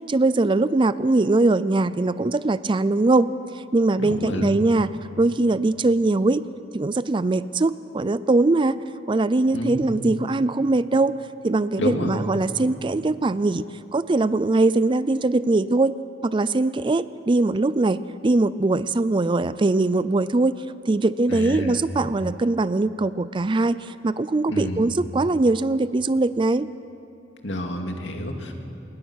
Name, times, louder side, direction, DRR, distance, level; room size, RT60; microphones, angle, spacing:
voice 1, 0.1-3.3 3.5-4.9 5.2-6.4 6.7-8.8 9.1-11.2 11.4-13.6 13.9-15.9 16.2-20.5 20.9-26.7, right 2 dB, 25° right, 15 dB, 0.4 m, -21 dB
voice 2, 4.0-4.6 9.5-9.9 11.8-12.3 21.3-21.8 24.5-24.9 27.4-28.5, left 1 dB, 70° left, 3 dB, 2.5 m, -29 dB
26.5 x 21.0 x 6.3 m, 2.7 s
head